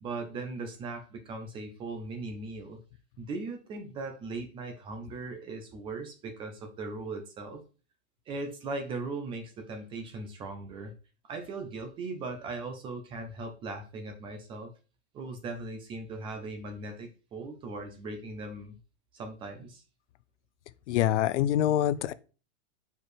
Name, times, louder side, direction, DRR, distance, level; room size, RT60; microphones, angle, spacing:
voice 1, 0.0-2.8 3.2-7.6 8.3-10.9 11.3-14.7 15.1-18.8 19.1-19.8, right 3 dB, 15° right, 0.5 m, -39 dB
voice 2, 20.9-22.1, left 12 dB, 80° left, 0.6 m, -25 dB
4.8 x 4.5 x 4.7 m
supercardioid pair, 170°, 35 cm